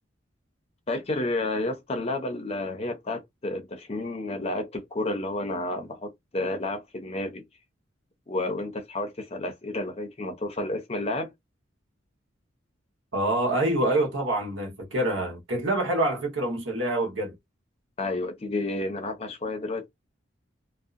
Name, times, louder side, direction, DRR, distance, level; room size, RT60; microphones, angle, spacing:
voice 1, 0.9-7.4 8.3-11.3 18.0-19.9, left 2 dB, 30° left, 0.6 m, -31 dB
voice 2, 13.1-17.3, right 1 dB, 85° right, 1.2 m, -26 dB
2.6 x 2.1 x 2.5 m
head